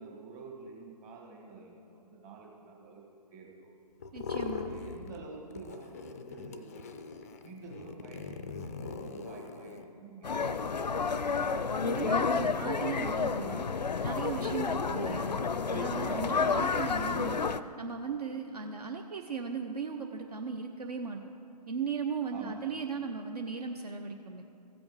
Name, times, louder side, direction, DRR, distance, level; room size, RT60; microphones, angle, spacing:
voice 1, 0.0-3.0 3.3-3.7 4.6-6.8 7.4-10.9 22.3-22.6, right 4 dB, 25° right, -1 dB, 1.6 m, -48 dB
sound 1, 4.0-5.2 5.5-9.9, left 5 dB, 25° left, 0.3 m, -41 dB
voice 2, 4.1-4.7 11.8-13.7 14.0-15.3 15.7-17.4 17.8-21.2 21.7-24.4, right 5 dB, 65° right, 4 dB, 0.7 m, -37 dB
sound 2, 10.2-17.6, left 5 dB, 85° left, 0.5 m, -30 dB
15.5 x 5.2 x 4.8 m, 2.5 s
figure-of-eight pair, 135°, 21 cm